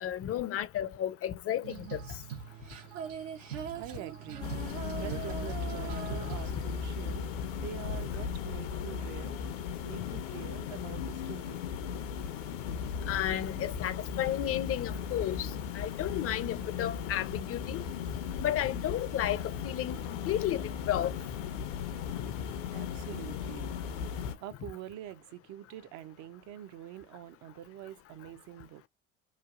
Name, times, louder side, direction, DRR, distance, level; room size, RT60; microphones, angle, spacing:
voice 1, 0.0-2.0 13.0-17.8 18.4-21.1, left 11 dB, 40° left, 0.5 m, -33 dB
Female singing, 1.6-7.1, right 8 dB, 85° right, 0.9 m, -41 dB
voice 2, 3.7-7.3 7.5-11.6 22.7-23.7 24.4-28.8, right 12 dB, 50° right, 0.5 m, -45 dB
sound 1, 4.4-24.4, left 7 dB, 75° left, 0.7 m, -37 dB
3.1 x 2.3 x 2.4 m
hypercardioid pair, 70°, 38 cm